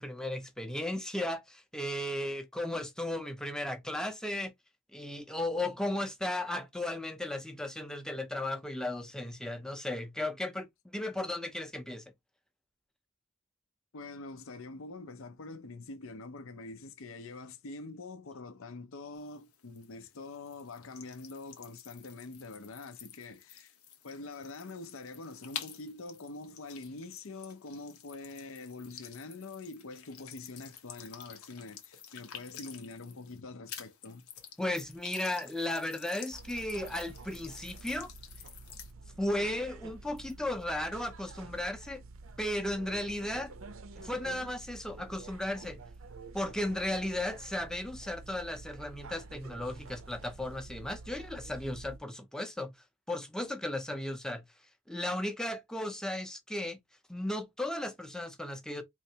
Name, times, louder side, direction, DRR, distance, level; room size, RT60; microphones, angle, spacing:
voice 1, 0.0-4.5 4.9-12.0 34.6-38.1 39.2-42.0 42.4-43.5 44.0-45.8 46.3-52.7 53.1-54.4 54.9-56.8 57.1-58.8, left 1 dB, 5° left, 0.6 m, -35 dB
voice 2, 13.9-23.8 24.0-34.3, left 3 dB, 65° left, 0.6 m, -45 dB
sound 1, 19.2-33.4 33.7-38.9, left 9 dB, 85° left, 1.0 m, -50 dB
sound 2, 36.3-52.0, right 3 dB, 65° right, 0.5 m, -49 dB
4.4 x 3.2 x 2.8 m
head